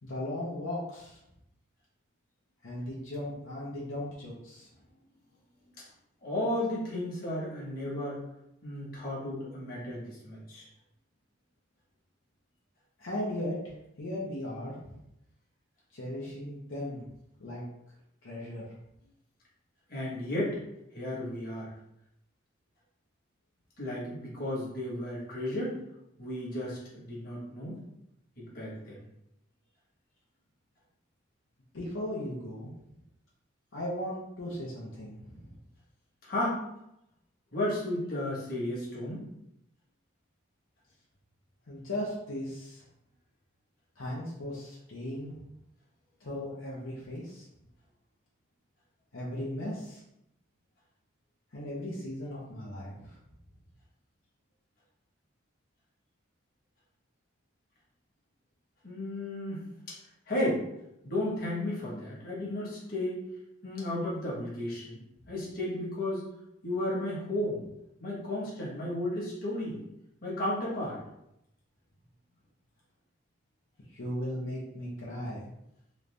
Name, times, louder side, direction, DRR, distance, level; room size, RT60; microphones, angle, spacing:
voice 1, 0.0-1.2 2.6-4.7 13.0-13.6 14.0-15.0 15.9-17.1 17.4-17.6 18.2-18.7 31.7-32.7 33.7-35.5 41.7-42.8 44.0-45.4 46.2-47.5 49.1-50.0 51.5-53.2 73.9-75.5, left 1 dB, 80° left, -5 dB, 0.8 m, -37 dB
voice 2, 6.2-8.2 8.6-10.7 19.9-20.6 20.9-21.7 23.8-25.8 26.2-27.8 28.4-29.0 36.2-36.6 37.5-39.2 58.8-60.0 60.3-60.6 61.0-63.2 63.6-66.3 66.6-67.6 68.0-69.8 70.2-71.0, left 1 dB, 45° left, -6 dB, 1.2 m, -33 dB
3.2 x 2.6 x 3.3 m, 0.82 s
head